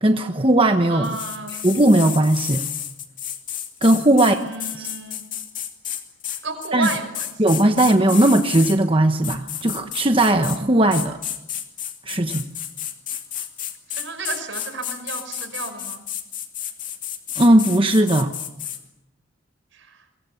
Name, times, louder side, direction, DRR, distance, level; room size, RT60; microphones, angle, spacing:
voice 1, 0.0-1.1 1.6-2.6 3.8-4.4 4.7-4.9 6.7-6.9 7.4-11.2 12.1-12.5 17.4-18.3, right 1 dB, 25° right, 6 dB, 1.1 m, -17 dB
voice 2, 0.9-1.7 4.1-5.2 6.4-7.3 13.9-16.0 19.7-20.0, right 3 dB, 75° right, 8 dB, 5.5 m, -32 dB
sound 1, 1.0-8.8 9.2-10.6 10.9-18.8, left 10 dB, 40° left, 2.7 m, -31 dB
29.5 x 23.5 x 7.1 m, 0.90 s
head